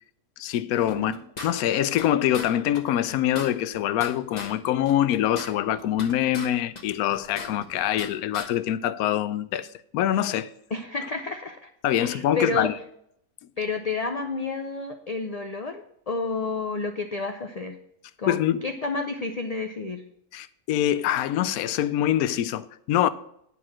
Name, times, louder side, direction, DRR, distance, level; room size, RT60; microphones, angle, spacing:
voice 1, 0.4-1.2 1.4-9.7 9.9-10.5 11.8-12.7 18.3-18.7 20.3-23.1, left 11 dB, 75° left, 1.0 m, -24 dB
sound 1, 0.9-2.1 2.3-2.5 2.7-2.8 3.1-4.5 4.8-6.5 6.7-8.1 8.3-8.5, left 3 dB, 30° left, 1.1 m, -38 dB
voice 2, 10.7-11.7 12.0-12.7 13.6-17.8 18.2-20.0, left 3 dB, 50° left, 0.4 m, -30 dB
9.9 x 4.7 x 7.3 m
omnidirectional pair, 1.6 m